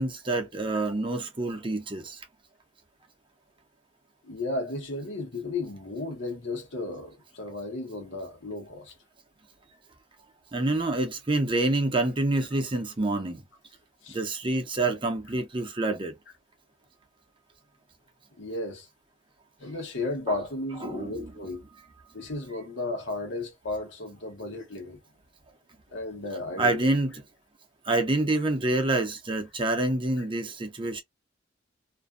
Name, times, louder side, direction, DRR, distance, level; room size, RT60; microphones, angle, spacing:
voice 1, 0.0-2.2 10.5-13.4 14.1-16.1 20.3-20.4 20.8-21.3 26.6-27.1 27.9-31.0, right 2 dB, 25° right, 0.6 m, -27 dB
voice 2, 4.2-8.9 14.0-14.2 18.4-18.9 19.6-21.6 22.1-25.0 25.9-26.8, left 2 dB, 70° left, 0.9 m, -34 dB
2.5 x 2.2 x 2.3 m
head